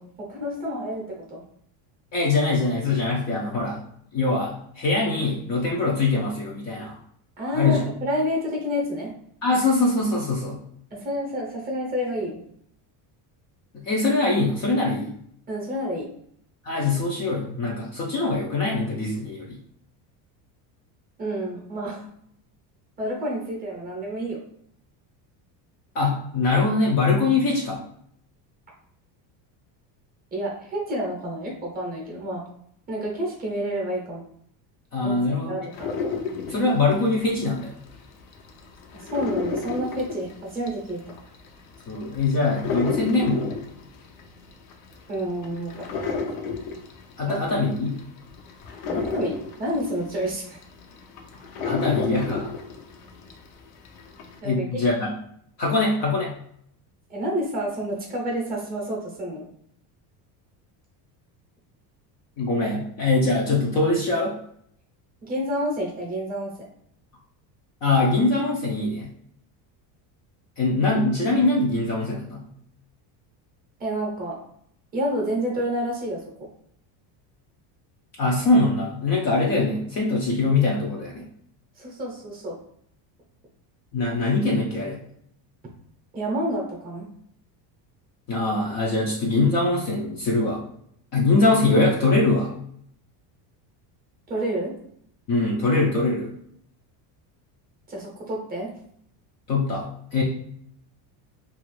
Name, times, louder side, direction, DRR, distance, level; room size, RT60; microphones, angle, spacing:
voice 1, 0.0-1.4 7.4-9.1 10.9-12.4 15.5-16.1 21.2-22.0 23.0-24.4 30.3-32.4 32.9-34.2 35.0-35.1 35.4-35.9 38.9-41.0 45.1-46.1 47.3-47.4 48.9-50.6 54.4-54.8 57.1-59.4 65.2-66.5 73.8-74.4 74.9-76.2 81.8-82.6 86.1-87.1 94.3-94.7 97.9-98.7, equal, 20° right, -2 dB, 0.6 m, -29 dB
voice 2, 2.1-3.9 4.1-7.0 7.5-7.8 9.4-10.6 13.7-15.1 16.6-19.6 25.9-27.8 34.9-35.6 36.5-37.7 41.9-43.5 47.2-48.0 51.6-52.5 54.4-55.1 55.6-56.3 62.4-64.3 67.8-69.1 70.6-72.5 78.2-81.3 83.9-85.0 88.3-90.6 91.1-92.5 95.3-96.3 99.5-100.2, left 3 dB, 40° left, -3 dB, 0.4 m, -23 dB
sound 1, 35.7-38.0 38.3-53.5 53.8-54.4, left 4 dB, 90° left, 0.8 m, -31 dB
2.8 x 2.5 x 3.1 m, 0.67 s
cardioid pair, 175°, 48 cm